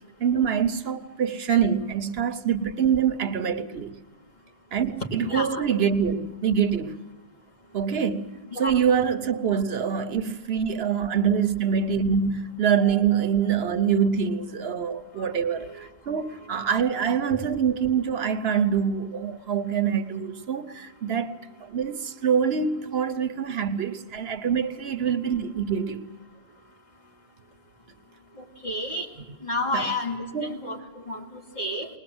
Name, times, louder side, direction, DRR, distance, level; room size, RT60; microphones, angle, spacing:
voice 1, 0.2-3.9 4.7-7.0 7.7-8.3 8.6-21.3 21.6-26.0 29.7-29.9 30.3-30.6, right 7 dB, 75° right, 1.1 m, -25 dB
voice 2, 5.0-5.6 8.5-8.8 15.2-15.3 15.6-15.9 16.2-16.7 18.4-18.7 28.3-29.1 29.4-31.9, left 1 dB, 45° left, 2.8 m, -32 dB
21.0 x 20.0 x 7.8 m
omnidirectional pair, 1.1 m